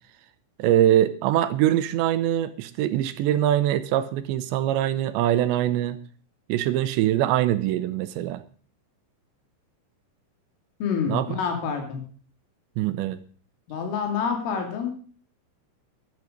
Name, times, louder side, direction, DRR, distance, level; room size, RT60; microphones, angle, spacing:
voice 1, 0.6-6.0 6.5-8.4 11.1-11.3 12.8-13.2, right 12 dB, 75° right, 12 dB, 2.8 m, -23 dB
voice 2, 10.8-12.0 13.7-14.9, left 6 dB, 80° left, 4 dB, 4.9 m, -27 dB
12.0 x 10.5 x 6.4 m, 0.44 s
omnidirectional pair, 5.7 m